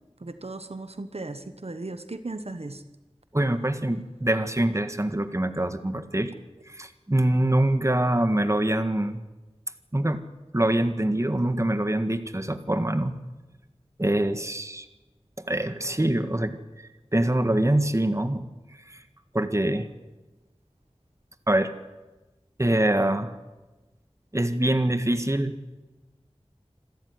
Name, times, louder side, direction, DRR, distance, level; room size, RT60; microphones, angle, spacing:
voice 1, 0.2-2.8, right 2 dB, 70° right, 10 dB, 1.3 m, -36 dB
voice 2, 3.3-6.3 6.7-9.2 9.9-10.2 10.5-13.2 14.0-14.8 15.5-18.4 19.3-19.9 21.5-21.7 22.6-23.3 24.3-25.6, right 1 dB, 25° right, 10 dB, 1.6 m, -24 dB
26.5 x 13.0 x 9.6 m, 1.1 s
wide cardioid pair, 45°, 11 cm